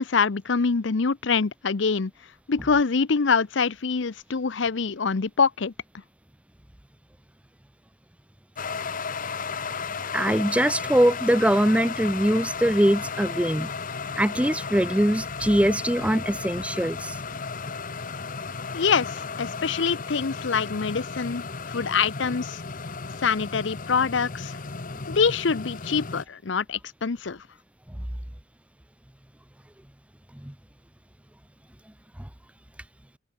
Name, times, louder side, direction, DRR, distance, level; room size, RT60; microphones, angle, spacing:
voice 1, 0.0-2.1 2.5-5.7 18.7-22.6 23.2-24.6 25.1-27.4, left 5 dB, 70° left, 0.7 m, -25 dB
sound 1, 8.6-26.3, left 5 dB, 45° left, 1.1 m, -34 dB
voice 2, 10.1-13.7 14.2-17.2 30.4-30.5, right 1 dB, 5° right, 0.9 m, -22 dB
open air
head